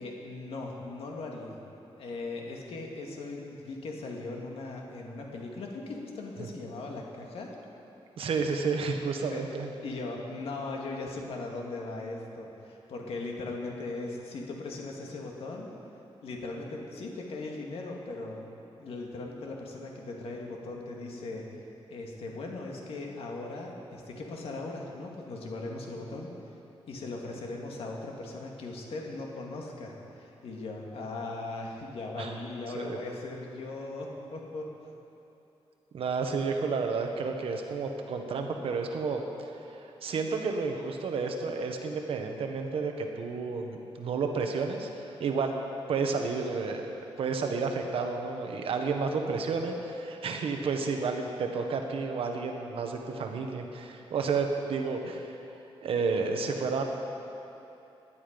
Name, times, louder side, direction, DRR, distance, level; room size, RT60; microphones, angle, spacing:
voice 1, 0.0-1.6 2.0-7.5 9.3-9.5 9.8-15.7 16.2-18.4 18.8-21.5 21.9-26.3 26.9-34.7, left 2 dB, 65° left, 0 dB, 2.0 m, -39 dB
voice 2, 8.2-9.7 32.2-32.4 32.7-33.0 35.9-45.5 45.9-46.8 47.2-55.4 55.8-56.8, right 4 dB, 65° right, 3 dB, 1.3 m, -31 dB
17.5 x 11.0 x 5.2 m, 2.9 s
wide cardioid pair, 180°, 10 cm